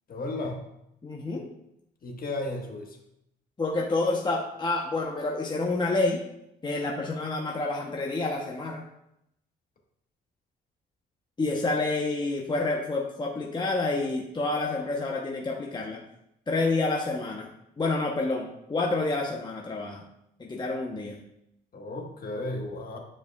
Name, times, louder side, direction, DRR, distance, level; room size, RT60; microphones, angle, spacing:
voice 1, 0.1-0.6 2.0-3.0 21.7-23.0, left 2 dB, 45° left, 1 dB, 1.4 m, -34 dB
voice 2, 1.0-1.5 3.6-6.2 6.6-8.8 11.4-16.0 16.5-17.5 17.8-20.0 20.4-21.2, left 2 dB, 20° left, -1 dB, 0.9 m, -28 dB
9.4 x 4.8 x 2.3 m, 0.80 s
cardioid pair, 90°, 20 cm